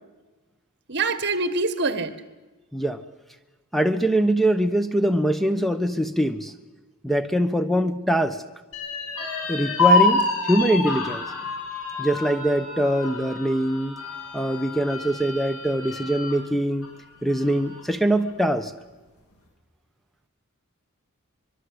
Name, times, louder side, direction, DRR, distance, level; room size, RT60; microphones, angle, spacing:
voice 1, 0.9-2.1, right 3 dB, 50° right, 13 dB, 1.8 m, -24 dB
voice 2, 3.7-6.5 7.0-8.4 9.5-11.2 12.0-14.0 14.3-16.9 17.2-18.7, right 1 dB, ahead, 10 dB, 1.0 m, -23 dB
sound 1, 8.7-16.4 16.8-16.9 17.3-18.0, left 3 dB, 80° left, 7.9 m, -27 dB
24.5 x 23.5 x 8.1 m, 1.2 s
head